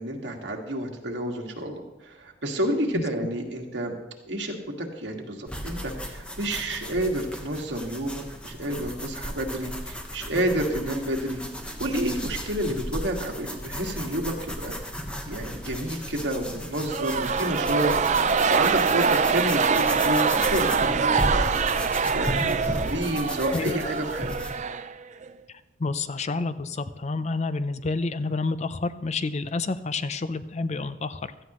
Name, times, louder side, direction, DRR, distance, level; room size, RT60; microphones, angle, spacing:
voice 1, 0.0-4.0 4.3-11.4 11.8-14.7 15.3-17.9 18.2-21.5 22.1-24.3, right 1 dB, 80° right, 1 dB, 1.9 m, -29 dB
sound 1, 5.5-24.5, equal, 5° left, 1.2 m, -35 dB
sound 2, 16.9-25.3, right 5 dB, 40° right, 0.5 m, -24 dB
voice 2, 23.5-24.0 25.8-31.4, left 3 dB, 40° left, 13 dB, 0.6 m, -29 dB
16.5 x 13.0 x 3.1 m, 1.0 s
head